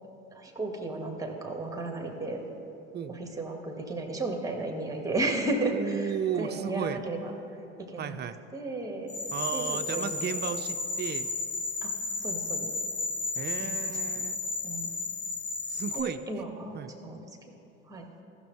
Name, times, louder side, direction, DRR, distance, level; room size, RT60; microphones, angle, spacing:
voice 1, 0.3-2.4 3.1-7.3 7.8-8.2 8.5-9.2 9.5-10.1 10.4-10.5 11.8-11.9 12.2-12.7 13.6-14.2 14.6-14.9 15.9-17.3 17.9-18.1, right 2 dB, 10° right, 2 dB, 1.9 m, -34 dB
voice 2, 5.7-7.0 8.0-8.4 9.3-11.3 13.4-14.4 15.7-16.4 16.7-16.9, right 8 dB, 30° right, 12 dB, 0.5 m, -34 dB
sound 1, 9.1-16.0, left 3 dB, 40° left, 1.4 m, -33 dB
17.5 x 6.4 x 3.4 m, 2.9 s
figure-of-eight pair, 55°, 34 cm